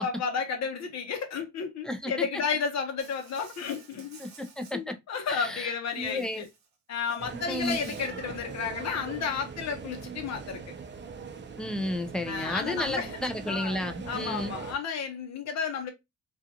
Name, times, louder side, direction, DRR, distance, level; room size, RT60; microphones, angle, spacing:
voice 1, 0.0-4.2 4.7-6.5 6.9-10.6 12.3-13.1 13.5-15.9, left 6 dB, 60° left, 0.9 m, -32 dB
voice 2, 1.8-2.4 4.2-4.9 5.3-6.4 7.3-8.0 11.6-14.6, left 1 dB, ahead, 0.5 m, -33 dB
Insect, 3.0-4.8 5.9-6.7 7.0-8.1, right 5 dB, 65° right, 0.8 m, -51 dB
sound 1, 7.2-14.7, right 5 dB, 40° right, 0.6 m, -41 dB
2.4 x 2.4 x 2.8 m
cardioid pair, 90°, 30 cm